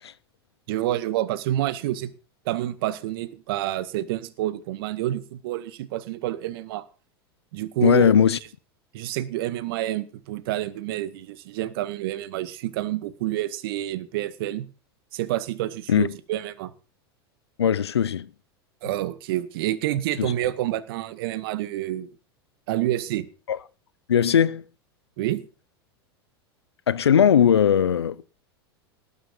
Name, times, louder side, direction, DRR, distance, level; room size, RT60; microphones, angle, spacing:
voice 1, 0.7-2.1 2.5-6.9 7.5-8.2 8.9-14.7 15.1-16.7 18.8-22.1 22.7-23.3 25.2-25.4, right 14 dB, 65° right, 1.9 m, -28 dB
voice 2, 7.8-8.4 15.9-16.1 17.6-18.3 20.2-20.3 23.5-23.6 24.1-24.6 26.9-28.2, left 8 dB, 85° left, 0.9 m, -19 dB
19.0 x 8.7 x 5.5 m
hypercardioid pair, 95°, 13 cm